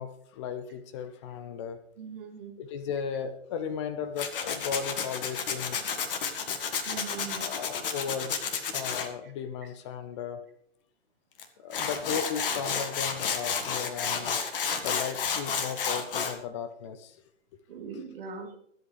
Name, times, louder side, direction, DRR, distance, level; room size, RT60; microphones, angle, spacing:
voice 1, 0.0-1.8 2.6-6.0 7.4-8.3 8.7-10.4 11.6-14.4 14.7-17.2 17.5-17.6 18.4-18.6, left 7 dB, 25° left, 9 dB, 0.8 m, -36 dB
voice 2, 2.0-2.6 6.8-7.5 9.2-9.3 11.6-11.8 17.7-18.5, right 5 dB, 50° right, 1 dB, 3.1 m, -41 dB
Tools, 4.2-9.1 11.4-11.5 11.7-16.3, left 6 dB, 45° left, 1.8 m, -31 dB
24.0 x 8.4 x 3.3 m, 0.68 s
figure-of-eight pair, 140°, 37 cm